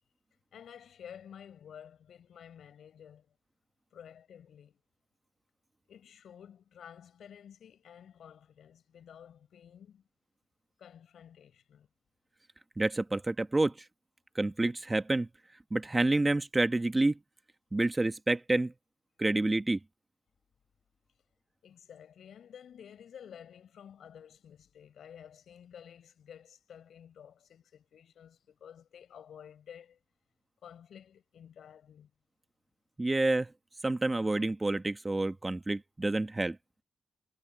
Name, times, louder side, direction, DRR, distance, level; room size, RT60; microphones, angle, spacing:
voice 1, 0.5-3.3 3.9-4.8 5.9-10.1 10.8-11.9 21.6-30.0 30.6-32.1, left 8 dB, 80° left, 6.5 m, -52 dB
voice 2, 12.8-13.7 14.3-15.3 15.7-17.2 17.7-18.7 19.2-19.8 33.0-33.5 33.8-36.6, right 2 dB, 20° right, 1.2 m, -28 dB
cardioid pair, 90°, 0 cm